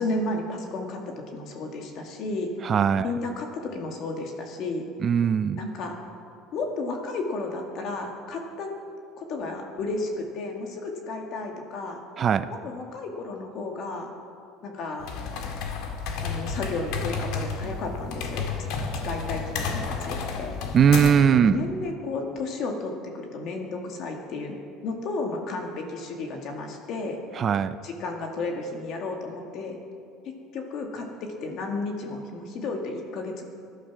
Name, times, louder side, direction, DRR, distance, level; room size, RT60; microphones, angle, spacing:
voice 1, 0.0-2.5 3.0-4.9 5.6-6.0 6.5-8.7 9.2-12.0 12.5-14.1 14.6-15.1 16.2-18.5 19.0-20.6 21.4-27.2 27.8-29.8 30.2-33.5, left 3 dB, 45° left, 2 dB, 2.0 m, -33 dB
voice 2, 2.6-3.1 5.0-5.6 12.2-12.5 20.7-21.5 27.4-27.8, right 7 dB, 25° right, 12 dB, 0.4 m, -20 dB
sound 1, 15.0-21.3, left 5 dB, 60° left, 2.0 m, -31 dB
20.0 x 11.5 x 6.1 m, 2.4 s
cardioid pair, 170°, 0 cm